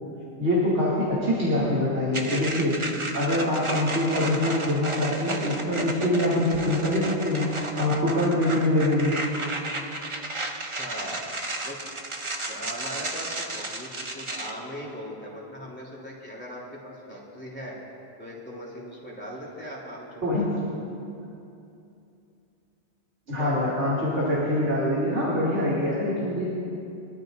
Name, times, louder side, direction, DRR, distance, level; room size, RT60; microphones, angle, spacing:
voice 1, 0.4-2.8 3.1-9.2 20.2-20.4 23.3-26.5, left 1 dB, 85° right, -8 dB, 2.8 m, -24 dB
sound 1, 2.1-14.5, right 2 dB, 30° right, 0.8 m, -33 dB
voice 2, 10.8-11.2 11.6-12.0 12.5-13.9 14.1-17.8 18.2-20.5 23.4-23.9, equal, 10° left, -5 dB, 3.2 m, -39 dB
24.5 x 13.0 x 2.6 m, 2.7 s
omnidirectional pair, 1.2 m